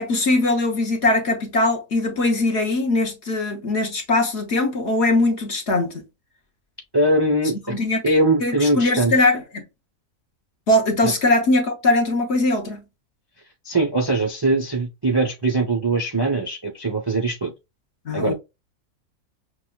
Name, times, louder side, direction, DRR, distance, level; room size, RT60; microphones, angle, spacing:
voice 1, 0.0-6.0 7.7-8.0 8.4-9.7 10.7-12.8 18.0-18.3, left 2 dB, 50° left, 1.1 m, -21 dB
voice 2, 6.9-7.5 8.0-9.1 11.0-11.1 13.6-17.5 18.1-18.3, right 2 dB, 35° right, 0.3 m, -21 dB
6.1 x 2.2 x 2.3 m
omnidirectional pair, 1.5 m